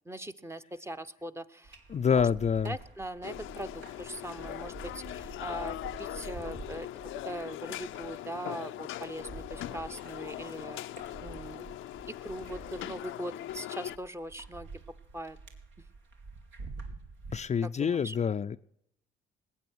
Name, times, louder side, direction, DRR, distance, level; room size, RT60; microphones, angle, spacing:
voice 1, 0.0-1.8 2.1-2.3 2.6-6.9 7.2-10.8 11.2-11.7 12.1-14.7 15.1-15.4 17.6-18.2, right 1 dB, 15° right, 0.8 m, -41 dB
sound 1, 1.6-17.4, right 3 dB, 75° right, 2.6 m, -48 dB
voice 2, 1.9-2.7 17.3-18.6, left 7 dB, 35° left, 0.5 m, -27 dB
sound 2, 3.2-14.0, left 14 dB, 80° left, 0.6 m, -41 dB
19.5 x 8.8 x 6.2 m
cardioid pair, 90°, 20 cm